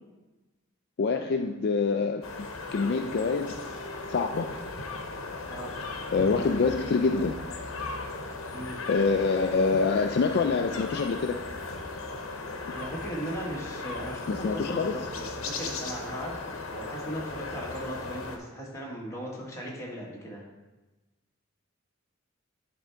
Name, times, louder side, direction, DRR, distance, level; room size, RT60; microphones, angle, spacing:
voice 1, 1.0-2.2 2.7-3.6 4.1-4.5 6.1-7.4 8.9-11.4 14.3-15.1, left 4 dB, 50° left, 5 dB, 0.3 m, -26 dB
sound 1, 2.2-18.4, left 3 dB, 80° left, 0.9 m, -37 dB
voice 2, 12.7-20.4, equal, 15° left, -4 dB, 1.6 m, -38 dB
10.0 x 3.5 x 4.5 m, 1.1 s
head